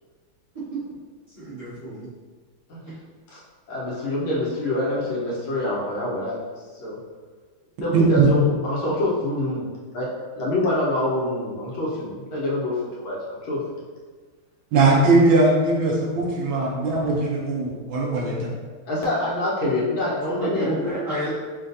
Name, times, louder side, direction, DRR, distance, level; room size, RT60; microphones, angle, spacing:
voice 1, 1.4-2.1 20.3-21.3, right 1 dB, 20° right, -11 dB, 1.0 m, -29 dB
voice 2, 3.7-6.5 6.8-7.0 7.8-9.6 9.9-10.1 10.4-13.6 18.8-20.7, left 1 dB, 70° left, -6 dB, 1.7 m, -26 dB
voice 3, 7.9-8.3 14.7-18.5, right 3 dB, 75° right, -2 dB, 1.4 m, -19 dB
5.7 x 2.4 x 2.6 m, 1.4 s
omnidirectional pair, 2.3 m